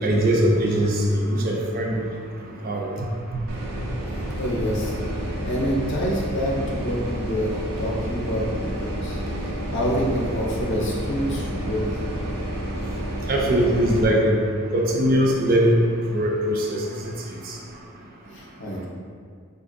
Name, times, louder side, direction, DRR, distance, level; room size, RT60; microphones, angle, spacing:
voice 1, 0.0-1.9 2.6-2.9 13.3-14.3 14.7-15.8 16.1-16.7, right 1 dB, 40° right, -1 dB, 0.4 m, -20 dB
sound 1, 3.5-14.0, right 1 dB, 90° right, 0.6 m, -30 dB
voice 2, 4.4-5.0 5.4-7.5 7.8-9.2 9.7-11.9 18.3-18.9, equal, 55° left, -3 dB, 0.6 m, -27 dB
3.8 x 2.5 x 2.4 m, 2.1 s
head